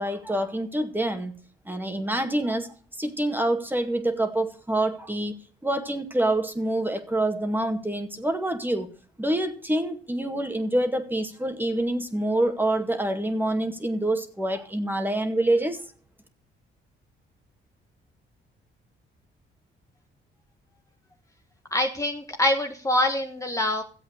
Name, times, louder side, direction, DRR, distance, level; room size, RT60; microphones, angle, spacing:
voice 1, 0.0-1.3 1.7-2.7 3.0-5.3 5.6-8.9 9.2-15.8, right 1 dB, 10° right, 6 dB, 2.1 m, -26 dB
voice 2, 21.7-23.8, left 1 dB, 15° left, 3 dB, 1.4 m, -25 dB
14.0 x 8.1 x 6.6 m, 0.42 s
cardioid pair, 90°, 20 cm